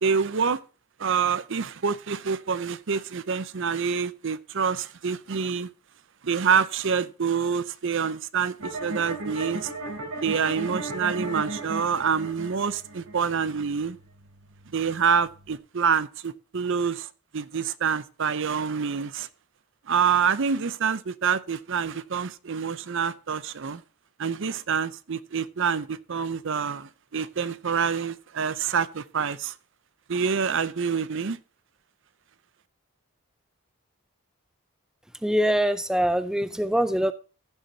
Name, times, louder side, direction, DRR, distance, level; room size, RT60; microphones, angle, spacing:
voice 1, 0.0-0.6 1.0-5.7 6.2-9.7 10.2-14.0 14.7-17.1 17.3-19.3 19.9-23.8 24.2-29.5 30.1-31.4, right 6 dB, 55° right, 0.6 m, -26 dB
sound 1, 8.6-15.5, right 2 dB, 85° right, 3.6 m, -36 dB
voice 2, 35.2-37.1, equal, 5° right, 0.3 m, -23 dB
15.5 x 7.2 x 2.8 m
head